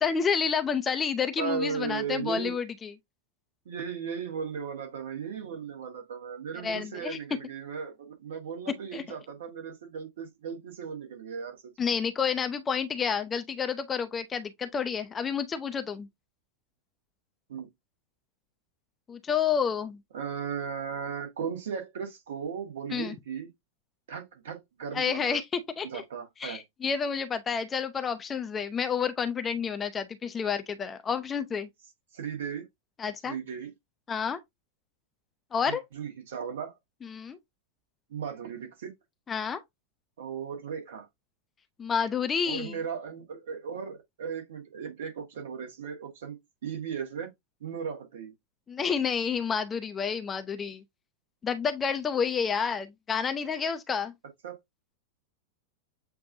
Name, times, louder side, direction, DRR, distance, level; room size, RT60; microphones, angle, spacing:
voice 1, 0.0-2.9 6.6-7.2 8.9-9.2 11.8-16.1 19.1-20.0 22.9-23.1 24.9-26.0 26.4-31.7 33.0-33.4 34.1-34.4 35.5-35.8 37.0-37.4 39.3-39.6 41.8-42.8 48.7-50.8 51.4-54.1, left 6 dB, 20° left, 0.6 m, -29 dB
voice 2, 1.4-2.6 3.6-11.9 17.5-17.7 20.1-23.5 24.1-25.4 25.8-26.6 32.1-32.6 33.2-33.7 35.7-36.7 38.1-38.9 40.2-41.1 42.5-46.4 46.6-47.3 47.6-48.3 54.4-54.6, right 7 dB, 60° right, 1.5 m, -36 dB
7.6 x 2.6 x 2.6 m
figure-of-eight pair, 90°, 0 cm